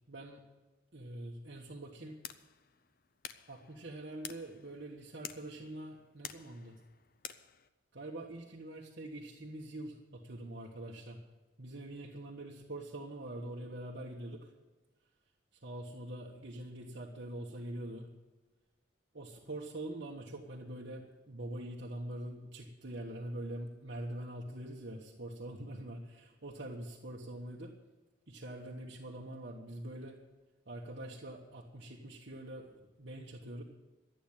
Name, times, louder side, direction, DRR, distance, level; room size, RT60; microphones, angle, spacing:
voice 1, 0.1-0.4 0.9-2.1 3.5-6.8 7.9-11.2 11.6-14.5 15.6-18.1 19.1-27.7 28.3-30.2 30.7-32.7 33.0-33.6, right 1 dB, 60° right, -3 dB, 1.5 m, -44 dB
sound 1, 2.1-7.7, left 9 dB, 45° left, 0.7 m, -50 dB
12.5 x 9.2 x 8.8 m, 1.3 s
head